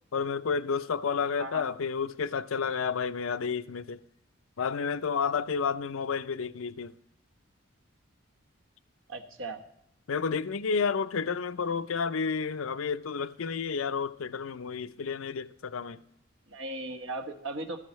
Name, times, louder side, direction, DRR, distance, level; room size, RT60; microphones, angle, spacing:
voice 1, 0.1-4.0 4.6-6.9 10.1-16.0, left 5 dB, 75° left, 0.5 m, -31 dB
voice 2, 1.4-1.7 9.1-9.6 16.5-17.8, right 2 dB, 70° right, 1.3 m, -37 dB
15.0 x 13.5 x 3.1 m
head